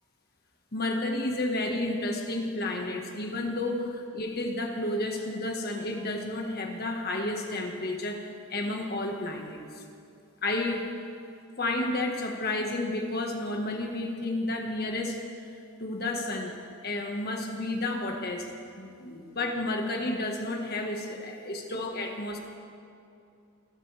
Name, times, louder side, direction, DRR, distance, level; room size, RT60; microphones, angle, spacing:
voice 1, 0.7-9.8 10.4-10.9 11.6-15.2 15.8-16.5 16.8-18.5 18.8-22.4, left 2 dB, 45° left, 2 dB, 1.7 m, -31 dB
28.0 x 13.0 x 3.5 m, 2.5 s
head